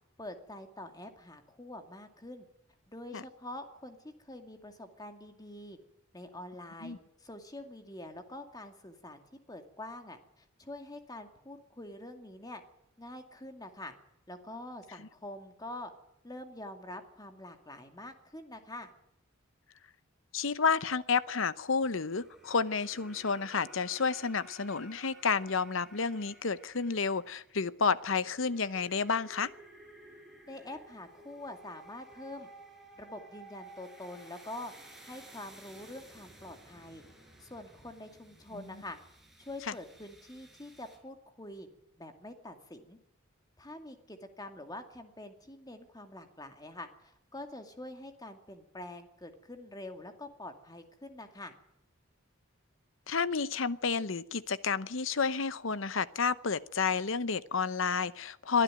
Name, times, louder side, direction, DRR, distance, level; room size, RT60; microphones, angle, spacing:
voice 1, 0.2-2.5 2.9-5.8 6.1-9.2 9.5-12.6 13.0-13.9 14.3-15.9 16.2-18.9 30.5-32.5 33.0-34.7 35.0-37.0 37.4-39.0 39.4-41.7 42.0-43.0 43.6-51.5, left 1 dB, 20° left, 6 dB, 2.3 m, -45 dB
voice 2, 20.3-29.5 38.6-38.7 39.7-39.8 53.1-58.6, left 5 dB, 65° left, 16 dB, 0.9 m, -30 dB
sound 1, 21.7-41.0, right 1 dB, ahead, 4.8 m, -55 dB
22.5 x 12.5 x 9.1 m, 0.82 s
head